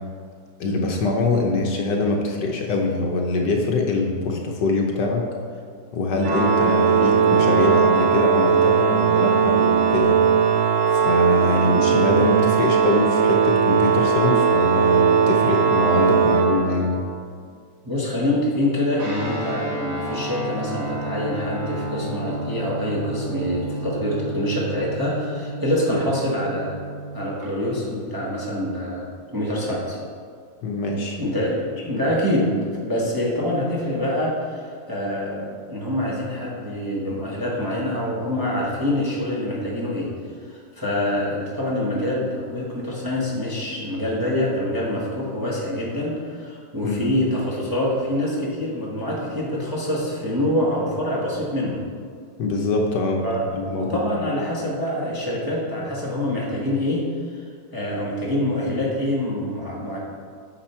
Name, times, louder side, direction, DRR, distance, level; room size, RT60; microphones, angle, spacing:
voice 1, 0.6-5.2 5.9-10.2 10.9-17.0 30.6-31.2 46.8-47.0 52.4-53.2 53.5-54.0, left 2 dB, 65° left, 1 dB, 1.3 m, -23 dB
Organ, 6.2-17.1, right 7 dB, 75° right, 1.3 m, -19 dB
voice 2, 17.8-26.8 27.1-30.0 31.2-32.5 32.8-40.1 40.5-51.8 53.2-53.4 53.8-57.1 57.3-57.4 57.7-60.0, left 1 dB, 15° right, -5 dB, 1.1 m, -25 dB
Guitar, 19.0-27.5, right 1 dB, 55° right, 2.5 m, -31 dB
8.9 x 6.1 x 4.4 m, 2.1 s
omnidirectional pair, 2.1 m